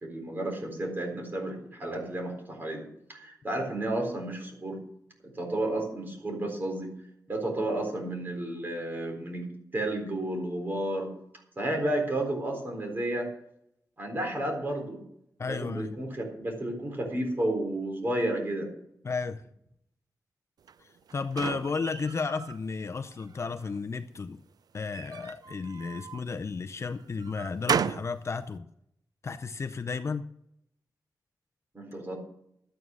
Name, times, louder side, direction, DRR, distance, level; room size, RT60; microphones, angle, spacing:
voice 1, 0.0-4.8 5.2-6.9 7.3-11.1 11.6-13.3 14.0-15.0 15.5-18.7 31.7-32.2, right 1 dB, 30° right, 2 dB, 4.0 m, -32 dB
voice 2, 15.4-15.9 19.0-19.4 20.8-24.4 24.7-28.7 29.2-30.3, left 4 dB, 40° left, 8 dB, 0.6 m, -33 dB
sound 1, 20.7-22.6 23.1-23.8 24.8-26.3 26.8-28.2, right 7 dB, 65° right, 0.4 m, -34 dB
12.5 x 9.4 x 6.3 m, 0.73 s
wide cardioid pair, 160°, 7 cm